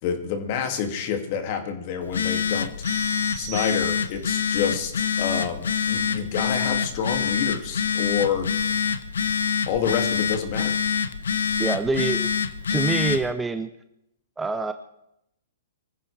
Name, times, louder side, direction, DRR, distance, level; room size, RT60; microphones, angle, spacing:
voice 1, 0.0-2.7 3.3-8.5 9.7-10.7, left 7 dB, 45° left, 5 dB, 2.5 m, -28 dB
Telephone, 2.0-13.3, left 7 dB, 70° left, 0.9 m, -26 dB
sound 1, 2.8-4.3, right 14 dB, 35° right, 1.7 m, -40 dB
voice 2, 11.6-12.3 12.7-13.7 14.4-14.7, right 3 dB, 10° right, 9 dB, 0.8 m, -25 dB
24.0 x 15.0 x 3.5 m, 0.80 s
figure-of-eight pair, 115°, 0 cm